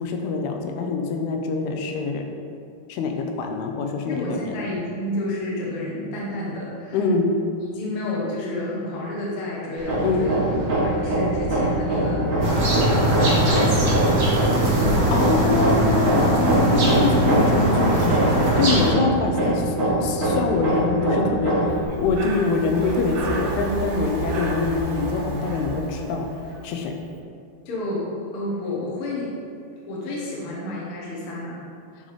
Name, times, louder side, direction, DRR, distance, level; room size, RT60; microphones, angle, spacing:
voice 1, 0.0-2.2 2.9-4.4 6.9-7.3 10.0-10.4 14.9-21.6 22.0-26.3 26.6-26.9, left 4 dB, 85° left, 3 dB, 2.7 m, -25 dB
voice 2, 4.0-7.0 7.7-10.4 10.8-12.6 12.9-14.4 27.7-29.3 29.9-31.6, left 1 dB, 55° left, -5 dB, 1.7 m, -30 dB
Hammer, 9.8-21.8, right 1 dB, 60° right, 0.9 m, -23 dB
sound 1, 12.4-18.9, right 1 dB, 45° right, 1.7 m, -21 dB
Breathing, 21.8-26.7, right 2 dB, 75° right, 1.6 m, -31 dB
10.0 x 3.9 x 5.0 m, 2.4 s
omnidirectional pair, 4.5 m